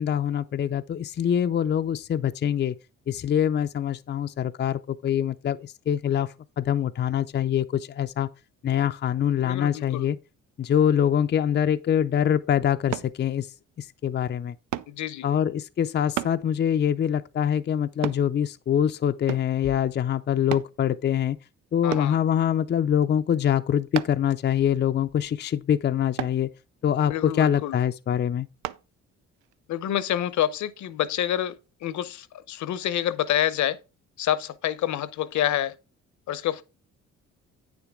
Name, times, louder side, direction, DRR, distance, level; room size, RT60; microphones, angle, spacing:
voice 1, 0.0-2.8 3.1-8.3 8.6-10.2 10.6-13.5 13.8-14.5 15.2-21.4 21.7-26.5 26.8-28.5, left 9 dB, 35° left, 0.4 m, -24 dB
voice 2, 9.4-10.1 14.9-15.2 21.8-22.2 27.0-27.7 29.7-31.6 31.8-33.8 34.2-35.7 36.3-36.6, left 11 dB, 70° left, 0.8 m, -27 dB
sound 1, 12.9-13.1 14.7-15.0 16.2-16.4 18.0-18.3 19.3-19.6 20.5-20.7 21.9-22.2 23.9-24.3 26.2-26.4 28.6-28.8 29.4-29.5, right 13 dB, 90° right, 0.5 m, -32 dB
8.9 x 7.1 x 3.6 m
cardioid pair, 90°, 30 cm